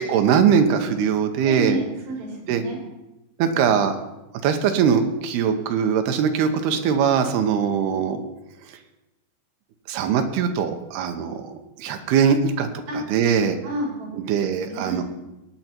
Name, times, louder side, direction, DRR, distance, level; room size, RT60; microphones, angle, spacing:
voice 1, 0.0-1.8 2.5-2.6 3.4-3.9 4.4-8.2 9.9-11.5 11.8-12.7 12.9-13.6 14.2-15.0, right 7 dB, 75° right, 6 dB, 2.4 m, -21 dB
voice 2, 1.4-2.8 12.9-13.0 13.6-14.1 14.6-15.0, right 1 dB, 45° right, -2 dB, 7.9 m, -30 dB
18.5 x 9.4 x 4.4 m, 0.99 s
omnidirectional pair, 5.6 m